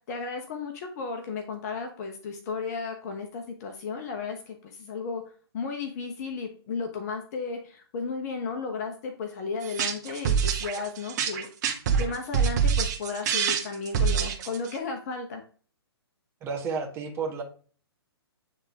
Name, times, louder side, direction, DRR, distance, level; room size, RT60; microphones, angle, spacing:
voice 1, 0.1-5.2 5.5-11.5 12.0-15.4, left 4 dB, 40° left, 4 dB, 1.1 m, -34 dB
sound 1, 9.6-14.8, right 7 dB, 40° right, 1.2 m, -25 dB
voice 2, 16.4-17.4, right 5 dB, 20° right, 2 dB, 1.4 m, -31 dB
9.0 x 3.6 x 3.5 m, 0.42 s
figure-of-eight pair, 125°, 14 cm